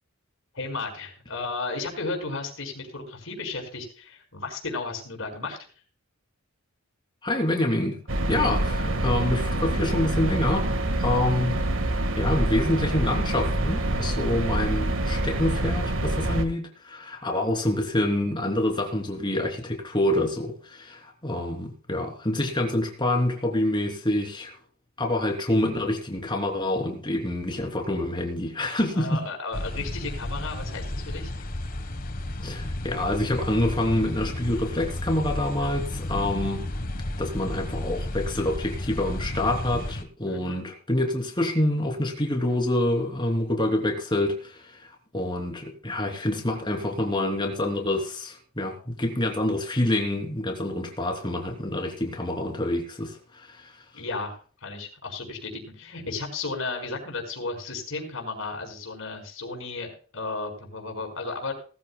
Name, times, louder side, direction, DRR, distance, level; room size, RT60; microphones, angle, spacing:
voice 1, 0.5-5.6 11.1-11.3 28.9-31.4 35.5-35.7 40.3-40.6 53.9-61.5, left 3 dB, 70° left, 3 dB, 5.0 m, -34 dB
voice 2, 7.2-8.0 8.3-10.7 11.0-11.6 12.2-24.6 25.0-29.2 32.4-36.7 37.2-53.7, left 1 dB, 20° left, 2 dB, 3.2 m, -27 dB
sound 1, 8.1-16.5, right 1 dB, 65° right, 1.6 m, -26 dB
sound 2, 29.5-40.0, left 1 dB, 45° left, 1.3 m, -33 dB
19.5 x 14.0 x 2.3 m, 0.41 s
head